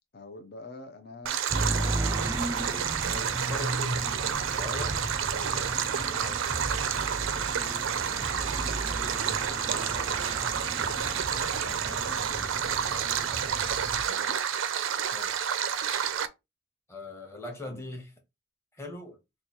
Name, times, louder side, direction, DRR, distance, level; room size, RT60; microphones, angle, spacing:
voice 1, 0.1-2.5 8.0-8.3 9.4-10.1 10.8-12.8 17.6-17.9, left 2 dB, 50° left, 0.5 m, -47 dB
Stream, 1.3-16.3, right 8 dB, 80° right, 0.4 m, -30 dB
sound 1, 1.5-14.1, right 1 dB, 15° right, 0.4 m, -35 dB
voice 2, 3.0-6.7 14.0-14.5 15.1-15.3 16.9-18.1 18.8-19.2, left 2 dB, 15° left, 0.9 m, -42 dB
3.0 x 2.3 x 4.1 m
head